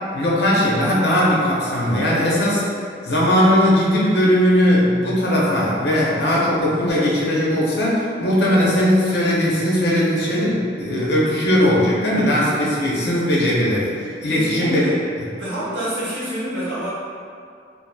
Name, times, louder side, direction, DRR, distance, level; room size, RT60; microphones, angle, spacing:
voice 1, 0.1-2.6 3.0-13.9 14.2-14.8, equal, 60° left, -5 dB, 0.6 m, -18 dB
voice 2, 14.3-14.9 15.4-16.9, right 1 dB, 90° right, -10 dB, 1.0 m, -27 dB
2.8 x 2.3 x 2.2 m, 2.3 s
head